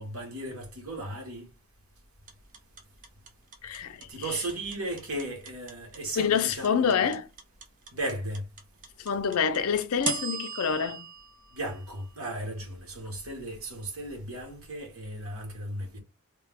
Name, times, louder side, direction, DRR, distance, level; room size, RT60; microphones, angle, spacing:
voice 1, 0.0-1.5 4.1-7.0 7.9-8.5 11.5-16.0, right 1 dB, 70° right, 1.3 m, -36 dB
sound 1, 2.3-12.4, right 5 dB, 40° right, 0.7 m, -38 dB
voice 2, 3.6-4.4 6.2-7.3 9.0-11.1, left 7 dB, 75° left, 0.5 m, -27 dB
3.2 x 2.3 x 3.4 m
head